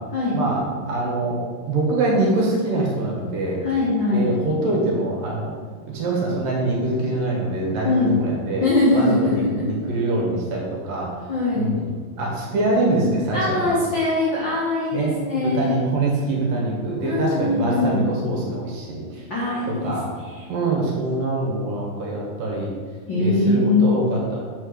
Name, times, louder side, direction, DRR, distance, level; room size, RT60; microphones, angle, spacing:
voice 1, 0.9-1.4 1.7-3.6 4.1-5.6 5.9-8.7 8.9-11.1 11.6-11.9 12.2-13.7 14.9-15.1 15.4-19.2 19.7-20.1 20.5-22.7 23.2-24.5, right 2 dB, 70° right, -3 dB, 3.0 m, -24 dB
voice 2, 3.6-4.4 7.8-8.1 8.6-9.8 11.3-11.7 13.3-15.8 17.0-18.1 19.3-20.5 23.1-23.9, left 2 dB, 55° left, -9 dB, 1.3 m, -22 dB
6.0 x 4.4 x 6.3 m, 1.6 s
omnidirectional pair, 4.1 m